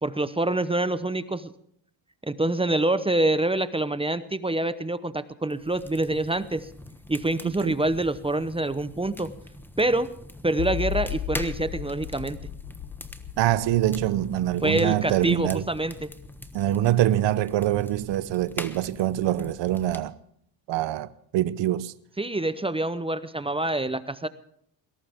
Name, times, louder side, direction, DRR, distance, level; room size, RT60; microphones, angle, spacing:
voice 1, 0.0-1.5 2.2-6.7 7.1-9.3 9.8-10.1 10.4-12.4 14.6-16.1 22.2-24.3, right 2 dB, 10° right, 0.8 m, -26 dB
sound 1, 5.5-20.0, left 1 dB, 5° left, 1.2 m, -43 dB
voice 2, 7.4-7.8 13.4-15.6 16.5-20.1 20.7-21.9, right 13 dB, 65° right, 0.8 m, -24 dB
sound 2, 10.6-17.8, left 11 dB, 60° left, 1.1 m, -36 dB
21.5 x 18.0 x 3.6 m
cardioid pair, 100°, 47 cm